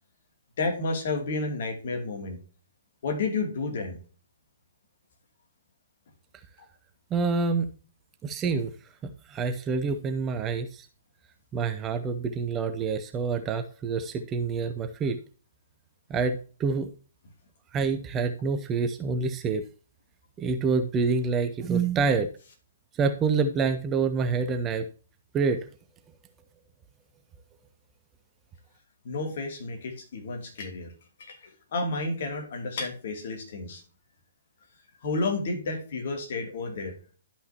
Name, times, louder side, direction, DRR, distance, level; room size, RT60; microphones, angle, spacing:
voice 1, 0.6-2.4 3.0-4.0 29.0-30.9 31.2-33.8 35.0-36.9, left 3 dB, 50° left, 3 dB, 2.7 m, -31 dB
voice 2, 7.1-7.7 8.2-8.7 9.0-10.9 11.5-15.2 16.1-16.9 17.7-19.6 20.4-22.3 23.0-24.9 25.3-25.6, right 5 dB, 20° right, 8 dB, 0.8 m, -27 dB
12.0 x 5.7 x 2.9 m, 0.37 s
figure-of-eight pair, 125°, 0 cm